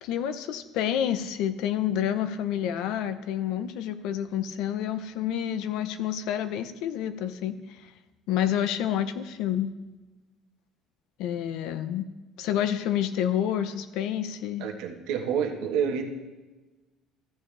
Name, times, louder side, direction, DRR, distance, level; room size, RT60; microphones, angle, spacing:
voice 1, 0.0-7.9 8.3-9.7 11.2-12.1 12.4-14.7, left 10 dB, 65° left, 12 dB, 0.6 m, -29 dB
voice 2, 14.6-16.0, right 7 dB, 80° right, 2 dB, 1.3 m, -28 dB
14.5 x 8.7 x 3.3 m, 1.2 s
cardioid pair, 175°, 0 cm